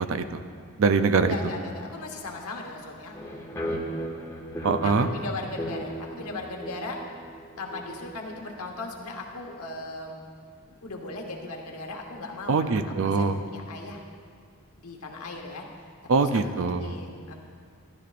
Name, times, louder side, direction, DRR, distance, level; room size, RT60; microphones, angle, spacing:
voice 1, 0.1-0.4 0.8-1.3 4.6-5.1 12.5-13.4 16.1-16.9, right 4 dB, 65° right, 9 dB, 0.5 m, -23 dB
voice 2, 1.2-3.3 4.8-7.0 7.6-10.2 10.7-14.0 14.8-15.6 16.2-16.4 16.8-17.3, left 2 dB, 80° left, 1 dB, 1.2 m, -38 dB
sound 1, 3.1-8.6, right 1 dB, 15° left, 0.9 m, -36 dB
12.5 x 11.5 x 2.5 m, 2.1 s
head